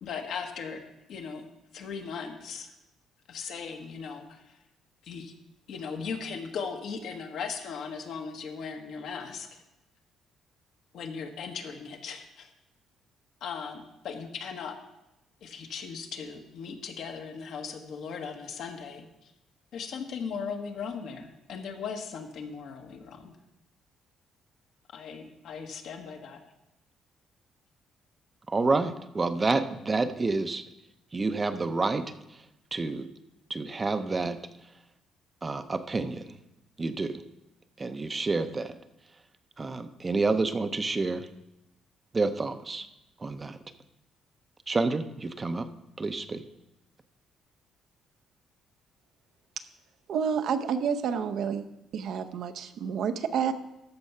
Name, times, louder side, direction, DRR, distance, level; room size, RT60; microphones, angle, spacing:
voice 1, 0.0-1.5 1.7-2.7 3.3-4.6 5.0-5.3 5.7-9.6 10.9-12.5 13.4-14.8 15.4-19.3 19.7-23.3 24.9-26.4, left 6 dB, 70° left, 4 dB, 1.2 m, -38 dB
voice 2, 28.5-30.6 31.1-32.0 32.7-33.1 33.5-34.4 35.4-36.3 36.8-37.2 37.8-38.7 39.6-41.3 42.1-42.9 43.2-43.6 44.7-45.7 46.0-46.4, right 3 dB, 25° right, 10 dB, 0.6 m, -28 dB
voice 3, 50.1-51.7 51.9-53.5, right 7 dB, 65° right, 9 dB, 0.7 m, -29 dB
13.5 x 4.7 x 5.5 m, 0.91 s
cardioid pair, 120°, 0 cm